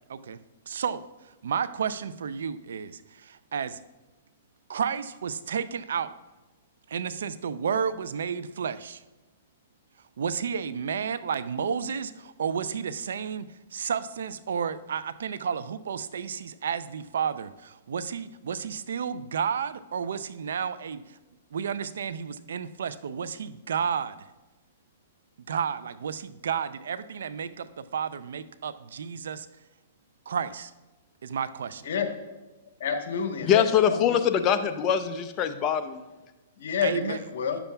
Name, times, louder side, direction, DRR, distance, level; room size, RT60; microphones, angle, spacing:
voice 1, 0.7-1.0 1.4-3.8 4.7-6.1 6.9-9.0 10.2-21.2 21.5-24.3 25.5-29.5 30.3-30.7 31.2-31.9 36.8-37.2, right 7 dB, 80° right, 14 dB, 0.4 m, -31 dB
voice 2, 32.8-34.2 36.6-37.6, left 6 dB, 70° left, 6 dB, 1.1 m, -29 dB
voice 3, 33.5-36.0, left 9 dB, 30° left, 8 dB, 0.5 m, -23 dB
10.0 x 6.9 x 2.3 m, 1.1 s
hypercardioid pair, 140°, 0 cm